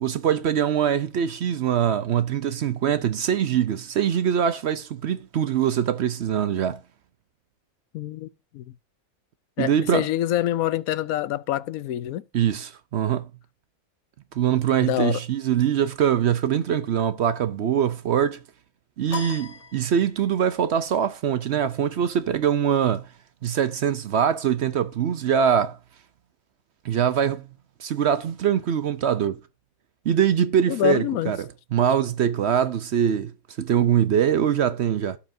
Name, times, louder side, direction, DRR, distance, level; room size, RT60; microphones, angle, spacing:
voice 1, 0.0-6.8 9.6-10.1 12.3-13.2 14.4-18.4 19.0-23.1 23.4-25.8 26.8-27.5 27.8-29.4 30.0-33.3 33.6-35.2, right 9 dB, 60° right, 0.8 m, -23 dB
voice 2, 7.9-8.3 8.5-8.6 9.6-12.2 14.8-15.2 30.7-31.3, left 13 dB, 80° left, 1.1 m, -26 dB
sound 1, 19.1-20.5, left 5 dB, 30° left, 1.1 m, -37 dB
16.5 x 5.8 x 2.6 m
omnidirectional pair, 1.5 m